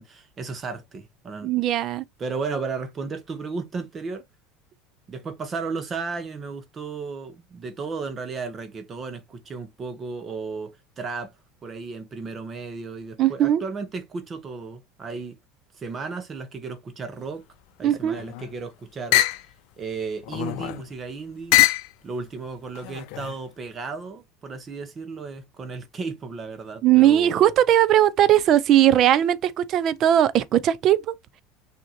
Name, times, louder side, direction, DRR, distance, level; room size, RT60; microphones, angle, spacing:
voice 1, 0.0-1.5 2.2-4.2 5.1-11.3 11.6-15.4 15.8-17.4 17.8-19.2 19.8-21.6 22.0-27.5, right 4 dB, 30° right, 1.0 m, -34 dB
voice 2, 1.4-2.0 13.2-13.6 17.8-18.2 26.8-31.1, right 11 dB, 45° right, 0.5 m, -19 dB
sound 1, 18.0-18.5 19.1-19.5 20.2-20.9 21.5-21.9 22.7-23.4, left 17 dB, 65° left, 0.5 m, -23 dB
6.3 x 2.8 x 2.8 m
supercardioid pair, 120°, 0 cm